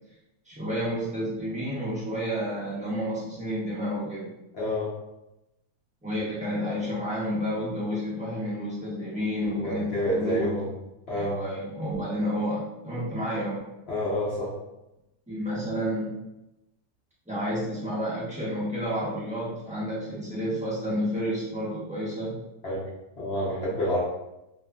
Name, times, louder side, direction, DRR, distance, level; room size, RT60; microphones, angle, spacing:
voice 1, 0.5-4.3 6.0-10.5 11.1-13.6 15.3-16.1 17.3-22.4, equal, 10° right, -9 dB, 0.4 m, -30 dB
voice 2, 4.5-4.9 9.5-10.7 11.1-11.4 13.9-14.5 22.6-22.8 23.2-24.0, equal, 60° left, -7 dB, 0.7 m, -28 dB
2.8 x 2.4 x 2.2 m, 0.92 s
omnidirectional pair, 1.7 m